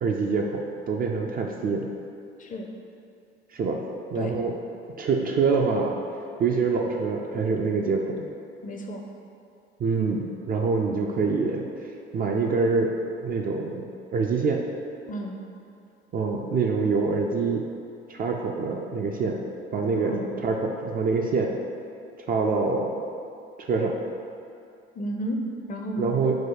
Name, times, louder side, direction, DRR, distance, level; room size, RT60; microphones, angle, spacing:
voice 1, 0.0-1.9 3.5-3.8 4.1-4.5 5.0-5.9 6.4-8.3 9.8-11.6 12.1-12.9 13.2-14.6 16.1-17.6 18.1-19.4 19.7-21.5 22.3-23.0 23.6-24.0 26.0-26.4, right 4 dB, 30° right, 1 dB, 0.4 m, -25 dB
voice 2, 8.6-9.0 15.1-15.4 20.0-20.3 24.9-25.4 25.7-26.1, equal, 30° left, 1 dB, 0.5 m, -32 dB
4.0 x 2.2 x 4.6 m, 2.6 s
figure-of-eight pair, 55°, 29 cm